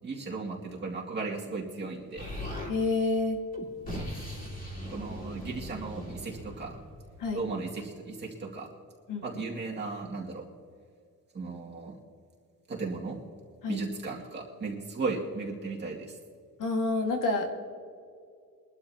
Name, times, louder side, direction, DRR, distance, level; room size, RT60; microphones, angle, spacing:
voice 1, 0.0-2.2 4.9-6.8 7.3-8.7 9.2-10.4 11.3-12.0 12.7-13.2 13.7-16.2, right 3 dB, 30° right, -3 dB, 2.3 m, -36 dB
Explosion, 2.2-2.7 3.5-7.4, equal, 25° left, 2.5 m, -39 dB
voice 2, 2.7-3.4 7.2-7.5 9.1-9.2 13.6-13.8 16.6-17.6, left 3 dB, 70° left, 3 dB, 1.9 m, -28 dB
23.5 x 12.0 x 2.9 m, 2.3 s
cardioid pair, 170°, 34 cm